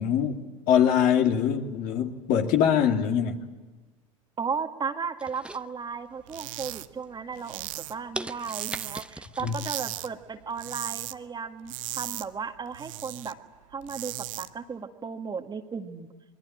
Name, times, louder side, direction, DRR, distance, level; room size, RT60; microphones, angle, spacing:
voice 1, 0.0-3.5 9.4-9.6, left 8 dB, 50° left, 4 dB, 2.7 m, -23 dB
voice 2, 4.4-13.4 13.7-16.1, right 5 dB, 25° right, 7 dB, 1.9 m, -35 dB
sound 1, 5.2-6.2 6.7-7.0 7.5-7.6 8.1-9.8 10.2-10.3, right 2 dB, 5° right, 0.9 m, -39 dB
sound 2, 6.3-6.9 7.1-9.2 9.5-10.1 10.4-11.2 11.5-13.3 13.7-14.5, right 15 dB, 70° right, 0.9 m, -37 dB
26.0 x 22.0 x 8.9 m, 1.2 s
figure-of-eight pair, 75°, 18 cm